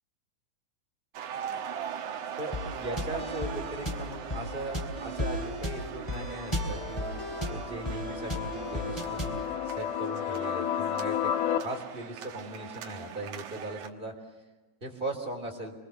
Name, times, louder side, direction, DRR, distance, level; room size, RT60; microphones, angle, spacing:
sound 1, 1.1-13.9, right 8 dB, 60° right, 2.1 m, -41 dB
voice 1, 2.4-7.1 7.5-14.1 14.8-15.7, right 2 dB, 15° right, 1 dB, 3.1 m, -39 dB
sound 2, 2.5-9.5, left 1 dB, 5° left, 2.8 m, -35 dB
sound 3, 6.0-11.6, left 10 dB, 70° left, 2.8 m, -33 dB
28.5 x 23.5 x 6.8 m, 1.2 s
omnidirectional pair, 4.8 m